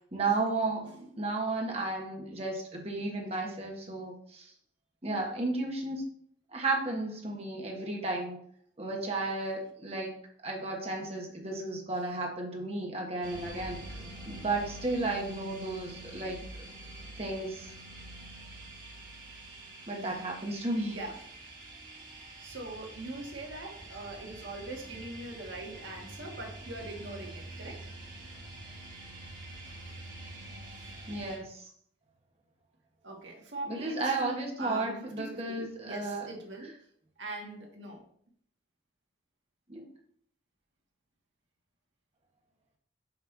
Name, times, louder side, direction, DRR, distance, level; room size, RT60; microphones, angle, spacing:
voice 1, 0.1-4.5 5.0-6.0 6.5-8.4 8.8-16.4 17.2-17.7 19.9-21.0 31.1-31.7 33.7-36.3 39.7-39.9, right 2 dB, 35° right, 0 dB, 1.3 m, -33 dB
sound 1, 13.2-31.4, right 1 dB, 50° right, 1.9 m, -46 dB
voice 2, 20.9-21.2 22.4-27.9 29.6-30.0 33.0-36.7 37.2-38.0, right 2 dB, 85° right, 1 dB, 1.6 m, -42 dB
5.8 x 3.2 x 5.8 m, 0.63 s
head